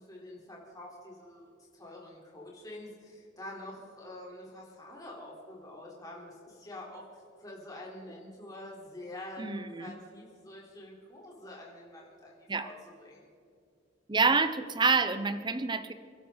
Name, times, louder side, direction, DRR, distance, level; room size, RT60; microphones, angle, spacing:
voice 1, 0.0-1.4 1.7-7.0 7.4-13.3, left 1 dB, 20° left, -4 dB, 3.9 m, -46 dB
voice 2, 9.4-9.9 12.5-12.7 14.1-15.9, right 4 dB, 25° right, 11 dB, 0.8 m, -27 dB
29.0 x 12.0 x 4.1 m, 2.5 s
head